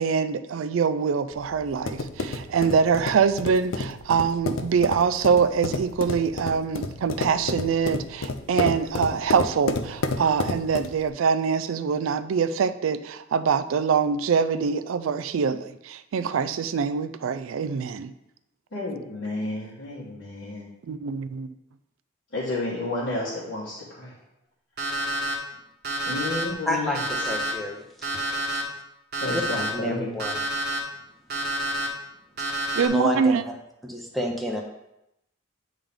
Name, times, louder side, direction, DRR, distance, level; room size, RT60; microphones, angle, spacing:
voice 1, 0.0-18.1 20.9-21.5 32.8-33.4, right 6 dB, 85° right, 0.4 m, -24 dB
sound 1, 1.3-11.1, left 3 dB, 85° left, 0.5 m, -31 dB
voice 2, 18.7-20.7 22.3-24.1 26.0-27.0 29.2-30.2, left 2 dB, 65° left, 1.4 m, -31 dB
Alarm, 24.8-25.3 25.8-26.4 26.9-27.5 28.0-28.6 29.1-29.7 30.2-30.8 31.3-31.9 32.4-32.9, right 1 dB, 50° right, 1.2 m, -28 dB
voice 3, 26.7-27.0 27.3-27.8 28.4-28.6 29.3-29.4 29.7-30.4 32.5-32.6 32.9-33.5 33.8-34.6, left 1 dB, ahead, 0.6 m, -29 dB
8.6 x 3.7 x 3.4 m
head